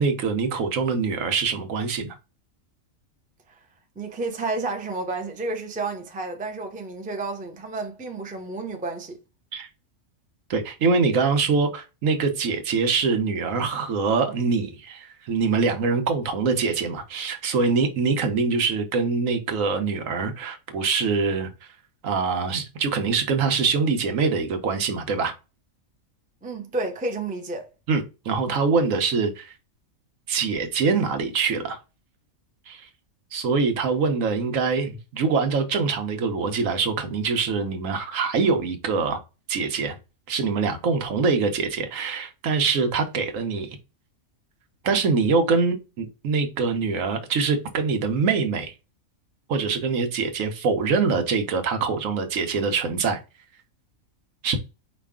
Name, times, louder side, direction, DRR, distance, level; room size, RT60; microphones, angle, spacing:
voice 1, 0.0-2.2 9.5-9.7 10.5-21.7 22.0-25.3 27.9-29.5 30.3-31.8 32.7-32.9 33.3-39.2 39.5-40.0 40.3-43.8 44.8-48.7 49.5-53.2 54.4-54.6, right 4 dB, 75° right, 1.2 m, -24 dB
voice 2, 4.0-9.2 26.4-27.7, right 3 dB, 10° right, 0.4 m, -31 dB
5.0 x 2.4 x 3.6 m
omnidirectional pair, 1.4 m